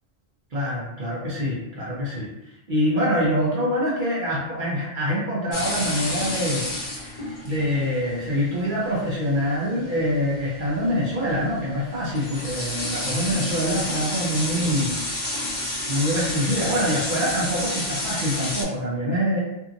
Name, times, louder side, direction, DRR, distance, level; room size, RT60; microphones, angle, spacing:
voice 1, 0.5-2.3 2.7-6.7 7.4-14.9 15.9-19.4, equal, 50° right, -5 dB, 0.8 m, -25 dB
sound 1, 5.5-18.6, left 1 dB, 35° left, 0.8 m, -30 dB
2.7 x 2.6 x 2.5 m, 0.88 s
omnidirectional pair, 1.2 m